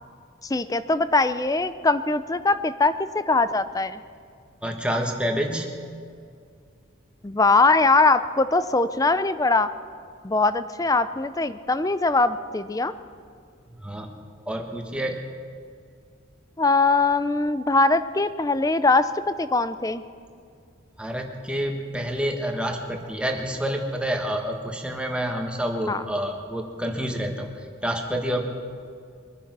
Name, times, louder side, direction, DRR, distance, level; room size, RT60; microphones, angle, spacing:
voice 1, 0.4-4.0 7.2-9.7 10.2-12.9 16.6-20.0 25.9-26.0, left 3 dB, 20° left, 13 dB, 0.5 m, -21 dB
voice 2, 4.6-5.8 13.8-14.1 14.5-15.2 21.0-27.5 27.8-28.4, equal, 5° right, 2 dB, 1.4 m, -28 dB
23.5 x 9.9 x 6.1 m, 2.2 s
head